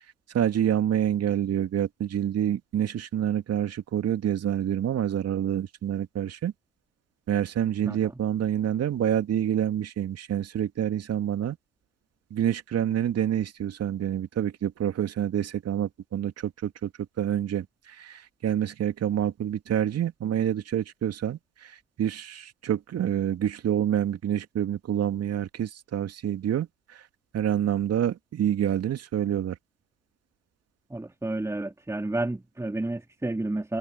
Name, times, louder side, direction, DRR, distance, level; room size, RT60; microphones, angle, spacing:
voice 1, 0.3-6.5 7.3-11.6 12.3-16.9 17.2-21.7 22.0-26.7 27.3-29.6, right 10 dB, 40° right, 2.7 m, -27 dB
voice 2, 30.9-33.8, right 2 dB, 10° right, 2.8 m, -30 dB
figure-of-eight pair, 60°, 37 cm